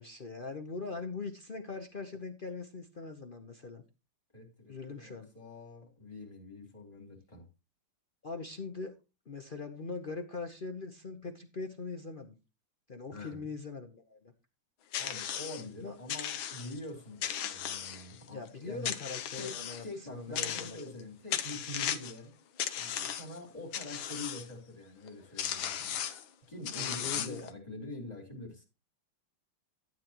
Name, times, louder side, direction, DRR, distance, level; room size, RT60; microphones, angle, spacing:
voice 1, 0.0-3.8 4.7-5.3 8.2-9.0 9.3-12.3 12.9-14.3 15.8-16.0 18.3-20.9 26.7-27.5, left 4 dB, 55° left, 4 dB, 0.5 m, -41 dB
voice 2, 4.3-7.5 13.1-13.4 15.0-18.9 19.3-19.6 19.8-22.3 22.7-26.0 26.5-28.6, left 2 dB, 15° left, 0 dB, 3.9 m, -45 dB
sound 1, 14.9-15.6 16.1-16.8 17.2-18.3 18.9-19.8 20.4-21.0 21.3-22.2 22.6-23.4 23.7-24.5 25.1-25.2 25.4-26.2 26.7-27.5, left 9 dB, 70° left, 1.6 m, -36 dB
12.5 x 9.0 x 3.0 m, 0.29 s
omnidirectional pair, 2.3 m